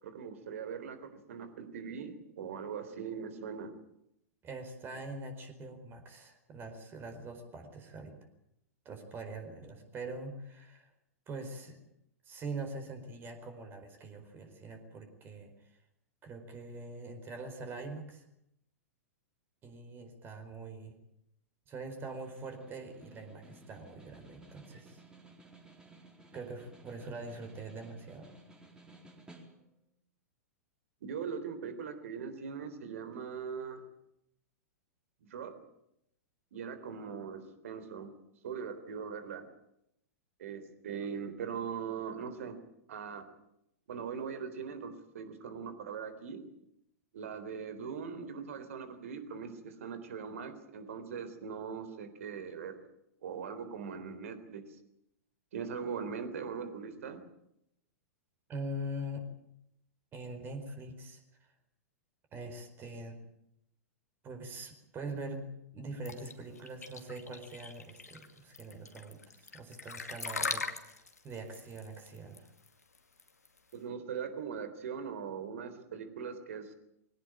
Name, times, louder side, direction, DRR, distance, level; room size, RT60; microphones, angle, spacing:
voice 1, 0.0-3.8 31.0-33.8 35.3-35.6 36.5-38.1 38.4-39.5 40.4-42.6 42.9-43.3 43.9-46.5 47.1-52.8 53.2-54.7 55.5-57.2 73.7-76.7, right 6 dB, 60° right, 11 dB, 3.7 m, -40 dB
voice 2, 4.4-8.2 8.8-10.9 11.3-11.8 12.2-15.8 16.2-18.2 19.6-20.9 21.7-25.0 26.3-28.3 58.5-59.2 60.1-61.5 62.3-63.2 64.2-65.5 65.7-72.5, right 2 dB, 25° right, 6 dB, 4.6 m, -43 dB
Snare drum, 21.9-29.9, right 2 dB, 10° right, 4.3 m, -57 dB
sound 1, 66.1-73.7, left 4 dB, 80° left, 2.4 m, -40 dB
22.5 x 18.0 x 9.0 m, 0.79 s
figure-of-eight pair, 100°, 8 cm